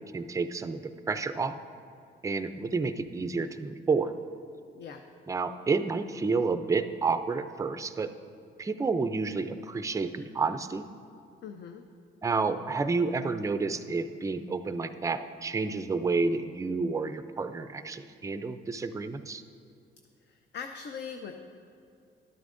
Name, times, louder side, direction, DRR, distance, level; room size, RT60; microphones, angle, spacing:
voice 1, 0.0-1.5 2.2-4.1 5.3-8.1 8.6-10.9 12.2-19.4, right 4 dB, 15° right, 10 dB, 0.4 m, -30 dB
voice 2, 11.4-11.8 20.2-21.3, left 6 dB, 60° left, 6 dB, 0.5 m, -41 dB
12.0 x 9.3 x 2.5 m, 2.5 s
cardioid pair, 90°, 20 cm